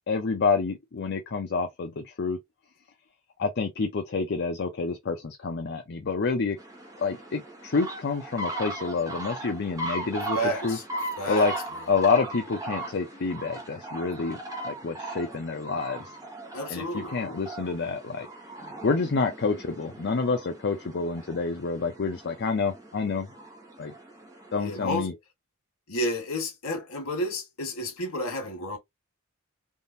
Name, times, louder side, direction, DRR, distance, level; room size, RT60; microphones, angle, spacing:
voice 1, 0.1-2.4 3.4-6.6 7.0-10.4 10.6-10.8 11.3-11.5 11.9-14.4 14.6-16.2 16.7-18.3 18.6-23.3 23.8-23.9 24.5-25.1, left 4 dB, 50° left, 0.6 m, -28 dB
sound 1, 6.6-24.8, right 2 dB, 15° right, 1.0 m, -38 dB
voice 2, 10.3-10.8 11.2-11.5 16.5-17.2 24.6-25.1 25.9-28.8, equal, 90° left, 1.5 m, -31 dB
3.6 x 2.5 x 2.6 m
head